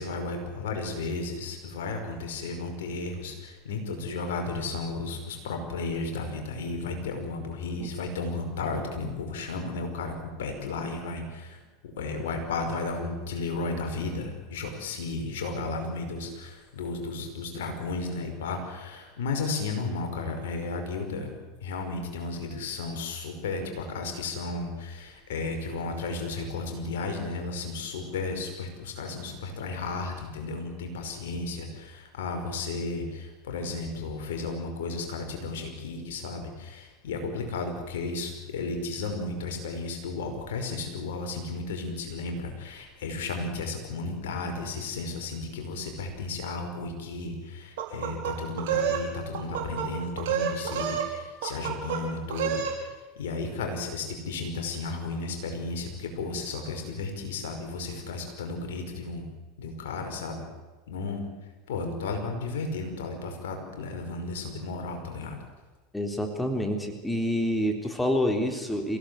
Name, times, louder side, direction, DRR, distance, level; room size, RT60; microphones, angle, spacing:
voice 1, 0.0-21.3 21.6-59.3 59.6-60.4 60.9-61.2 61.7-65.4, left 3 dB, 70° left, 4 dB, 5.5 m, -34 dB
sound 1, 47.8-49.0 49.3-49.9 50.2-51.1 51.4-52.0 52.3-52.8, right 8 dB, 65° right, 5.4 m, -28 dB
voice 2, 65.9-69.0, equal, 5° left, 3 dB, 3.5 m, -27 dB
27.0 x 17.0 x 8.3 m, 1.2 s
figure-of-eight pair, 80°, 0 cm